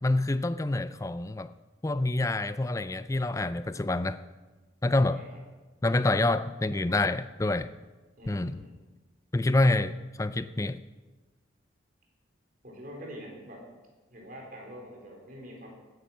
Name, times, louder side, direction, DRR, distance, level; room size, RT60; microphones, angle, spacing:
voice 1, 0.0-1.5 1.8-4.2 4.8-5.2 5.8-7.7 8.3-8.6 9.3-10.8, left 2 dB, 15° left, 14 dB, 0.4 m, -27 dB
voice 2, 5.1-5.4 8.2-8.8 12.6-13.7 14.1-15.7, equal, 45° right, -1 dB, 4.0 m, -45 dB
16.0 x 9.8 x 6.2 m, 1.2 s
head